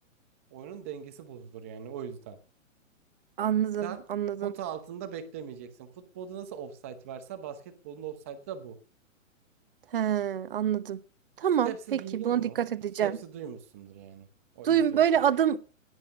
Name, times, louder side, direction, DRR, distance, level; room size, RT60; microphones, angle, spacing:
voice 1, 0.5-2.4 3.8-4.0 4.4-8.8 11.6-12.6 13.0-14.3 14.5-15.0, right 8 dB, 10° right, 0.8 m, -40 dB
voice 2, 3.4-4.5 9.9-11.0 11.4-13.2 14.6-15.6, right 9 dB, 45° right, 1.0 m, -26 dB
17.0 x 11.0 x 6.5 m
hypercardioid pair, 180°, 39 cm